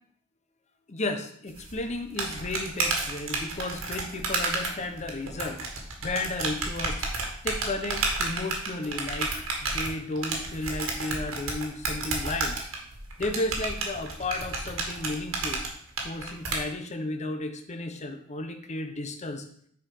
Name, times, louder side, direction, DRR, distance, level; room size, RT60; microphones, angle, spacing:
voice 1, 0.9-5.6 6.0-7.1 7.4-9.3 9.6-12.6 13.2-15.6 16.0-19.4, left 2 dB, 35° left, 7 dB, 0.8 m, -33 dB
sound 1, 1.6-16.6, right 3 dB, 75° right, 1.6 m, -31 dB
6.5 x 4.6 x 5.4 m, 0.63 s
head